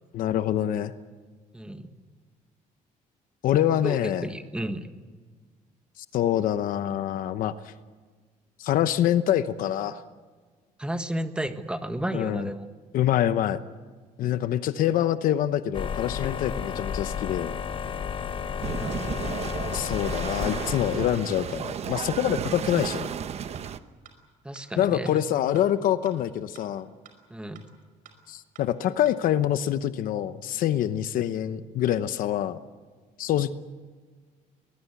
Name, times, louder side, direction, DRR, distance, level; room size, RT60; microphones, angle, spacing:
voice 1, 0.1-0.9 3.4-4.3 6.1-7.7 8.6-10.0 12.1-12.5 12.9-13.6 14.2-17.6 19.7-23.1 24.8-26.9 28.3-32.6 33.2-33.5, left 11 dB, 70° left, 11 dB, 1.0 m, -25 dB
voice 2, 1.5-1.9 3.8-4.9 10.8-12.7 18.7-19.2 24.4-25.1 27.3-27.6, right 1 dB, 5° right, 8 dB, 1.6 m, -33 dB
sound 1, 15.7-21.7, left 7 dB, 35° left, 1.1 m, -33 dB
sound 2, 18.6-23.8, right 8 dB, 45° right, 1.0 m, -33 dB
sound 3, 22.5-22.6 23.0-23.1 23.5-23.6 24.0-24.1 24.5-24.6 25.0-25.1 25.5-25.6 26.0-26.1 26.5-26.6 27.0-27.1 27.5-27.6 28.0-28.1 28.5-28.6 29.0-29.1, right 10 dB, 70° right, 5.2 m, -49 dB
23.0 x 20.5 x 8.4 m, 1.4 s
cardioid pair, 130°, 15 cm